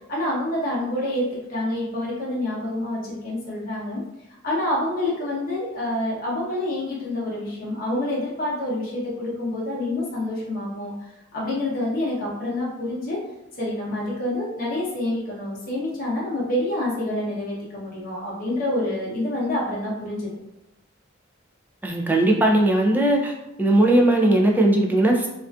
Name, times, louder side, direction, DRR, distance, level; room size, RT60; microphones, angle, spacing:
voice 1, 0.1-4.0 4.4-13.2 13.6-20.3, left 1 dB, 50° left, -6 dB, 0.7 m, -27 dB
voice 2, 21.8-23.3 23.6-25.3, right 1 dB, 10° right, 0 dB, 0.3 m, -18 dB
2.4 x 2.4 x 2.3 m, 0.93 s
head